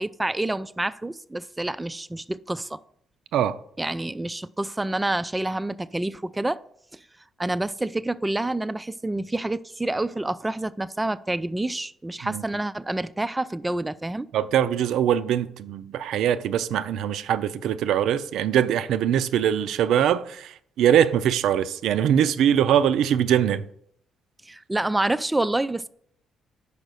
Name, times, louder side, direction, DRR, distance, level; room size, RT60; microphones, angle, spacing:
voice 1, 0.0-2.8 3.8-6.6 6.9-7.0 7.4-14.3 24.4-25.9, right 2 dB, 15° right, 0.3 m, -28 dB
voice 2, 14.3-23.6, right 9 dB, 80° right, 0.4 m, -22 dB
5.4 x 4.9 x 6.2 m
cardioid pair, 90°, 0 cm